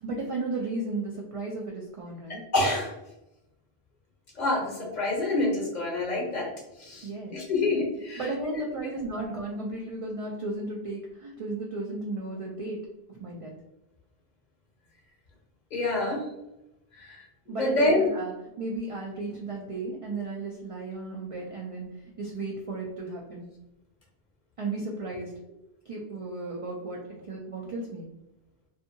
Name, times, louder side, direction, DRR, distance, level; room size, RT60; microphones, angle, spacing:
voice 1, 0.0-2.4 7.0-7.4 8.2-12.8 13.1-13.5 17.5-21.9 22.2-23.4 24.6-25.3 25.9-28.1, right 2 dB, 55° right, -2 dB, 0.3 m, -34 dB
voice 2, 2.3-2.9 4.4-6.5 6.8-8.2 15.7-16.2 17.0-17.2 17.5-18.1, left 2 dB, 50° left, -2 dB, 0.8 m, -27 dB
2.6 x 2.5 x 2.6 m, 0.88 s
omnidirectional pair, 1.1 m